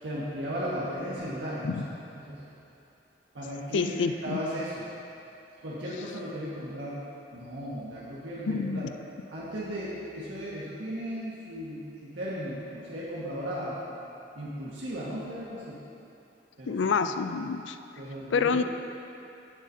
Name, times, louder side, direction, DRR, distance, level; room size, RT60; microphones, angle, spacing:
voice 1, 0.0-1.8 2.2-2.5 3.3-3.9 4.2-4.9 5.6-7.0 7.3-8.8 9.3-13.8 14.4-15.8 16.6-16.8 18.0-18.6, equal, 90° right, -8 dB, 1.6 m, -36 dB
voice 2, 3.7-4.4 8.5-8.9 16.7-17.8 18.3-18.6, left 5 dB, 90° left, 9 dB, 0.4 m, -27 dB
15.5 x 7.4 x 2.8 m, 2.8 s
head